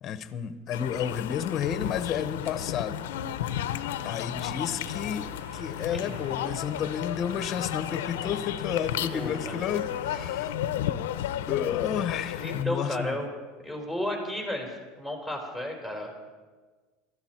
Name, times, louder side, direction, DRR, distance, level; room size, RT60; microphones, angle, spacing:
voice 1, 0.0-3.0 4.0-10.5 11.5-13.2, left 8 dB, 40° left, 11 dB, 1.0 m, -31 dB
sound 1, 0.7-12.6, left 11 dB, 90° left, 0.7 m, -33 dB
sound 2, 3.1-3.2 3.5-3.6 4.3-10.8, equal, 90° right, 4.3 m, -47 dB
voice 2, 3.9-4.3 5.9-6.2 9.1-9.6 12.4-13.3 13.6-16.1, left 1 dB, 10° right, 2 dB, 4.1 m, -33 dB
18.5 x 14.0 x 4.5 m, 1.4 s
supercardioid pair, 115°, 0 cm